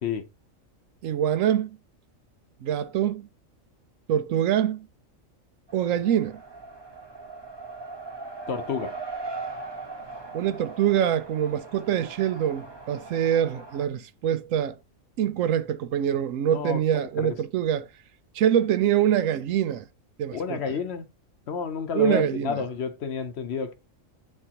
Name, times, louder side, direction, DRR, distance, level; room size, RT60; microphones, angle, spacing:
voice 1, 1.0-1.7 2.6-3.3 4.1-4.9 5.7-6.4 10.3-14.7 15.2-17.9 18.3-19.8 20.2-20.6 21.9-22.6, right 10 dB, 75° right, 1.0 m, -24 dB
Race car auto racing, 5.7-13.8, right 3 dB, 20° right, 0.9 m, -39 dB
voice 2, 8.5-9.0 16.5-17.4 20.3-21.0 21.5-23.7, left 6 dB, 60° left, 0.9 m, -30 dB
8.0 x 4.3 x 2.9 m
omnidirectional pair, 1.4 m